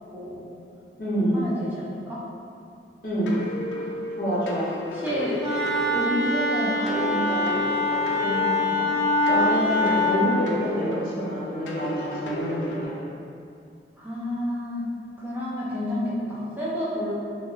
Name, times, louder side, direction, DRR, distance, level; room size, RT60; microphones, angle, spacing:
voice 1, 0.1-0.5 1.3-2.2 4.9-5.4 5.9-8.9 14.0-14.9 15.2-17.1, equal, 10° right, -8 dB, 0.4 m, -30 dB
voice 2, 1.0-1.4 3.0-3.3 4.1-4.7 9.2-13.0, equal, 55° left, -8 dB, 0.7 m, -26 dB
sound 1, 3.3-12.9, left 2 dB, 90° left, 0.3 m, -34 dB
Wind instrument woodwind instrument, 5.4-10.2, left 2 dB, 80° right, 0.5 m, -24 dB
2.2 x 2.1 x 3.0 m, 2.5 s
head